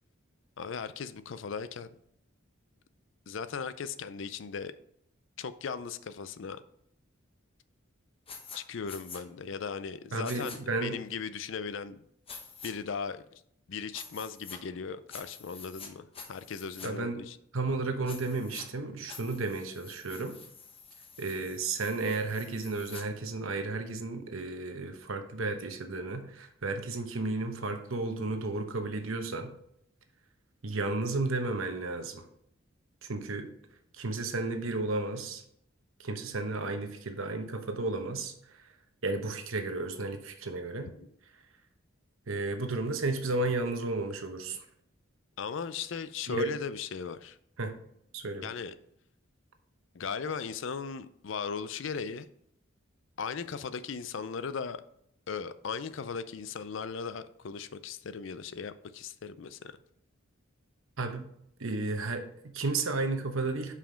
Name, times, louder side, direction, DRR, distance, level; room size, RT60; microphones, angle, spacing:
voice 1, 0.6-1.9 3.3-4.7 5.4-6.6 8.5-12.0 12.6-13.4 13.7-17.4 40.8-41.1 45.4-47.4 48.4-48.7 49.9-52.3 53.2-54.8 55.3-59.7, left 6 dB, 65° left, 0.4 m, -37 dB
sound 1, 8.3-8.6 8.9-9.2 10.2-10.6 12.3-12.7 13.9-14.6 15.1-16.9 18.1-18.6 19.1-23.0, left 5 dB, 25° left, 0.9 m, -47 dB
voice 2, 10.1-11.0 16.8-17.2 17.5-20.4 21.2-29.5 30.6-32.2 33.1-33.5 34.0-35.4 36.0-38.7 39.0-40.9 42.3-44.6 46.3-46.5 47.6-47.7 48.1-48.5 61.0-61.3 61.6-63.7, right 3 dB, 75° right, 0.9 m, -33 dB
5.7 x 4.9 x 5.1 m
head